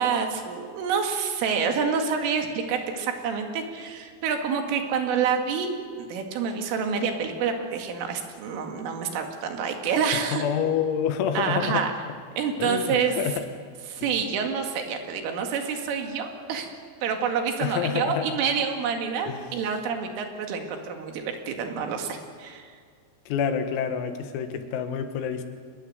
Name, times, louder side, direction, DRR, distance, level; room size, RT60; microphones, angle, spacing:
voice 1, 0.0-5.7 6.0-10.4 11.3-11.9 12.4-13.2 13.9-16.7 17.0-22.7, right 6 dB, 75° right, 4 dB, 4.5 m, -27 dB
voice 2, 10.1-11.9 12.6-13.4 14.0-14.1 17.6-18.3 19.3-19.5 23.3-25.4, left 8 dB, 85° left, 7 dB, 4.3 m, -28 dB
26.0 x 20.5 x 7.9 m, 2.1 s
omnidirectional pair, 6.0 m